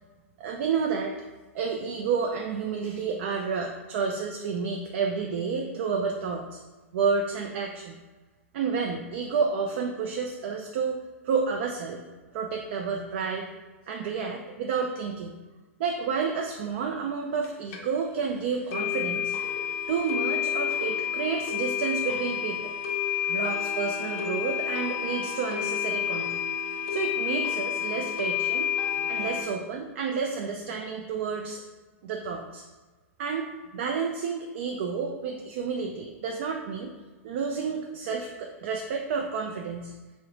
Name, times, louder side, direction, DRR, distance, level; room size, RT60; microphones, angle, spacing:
voice 1, 0.4-1.1 1.5-6.6 6.9-8.0 8.5-11.0 11.2-12.0 12.3-13.5 13.9-15.4 15.8-19.4 19.9-22.7 23.3-26.4 26.9-28.7 29.0-31.6 32.0-32.6 33.2-36.9 37.2-39.9, right 5 dB, 55° right, 1 dB, 0.3 m, -30 dB
sound 1, 17.4-17.5 17.7-17.8 18.2-18.3 18.7-29.4, left 9 dB, 40° left, 0.5 m, -29 dB
3.6 x 2.1 x 3.1 m, 1.2 s
hypercardioid pair, 125°, 8 cm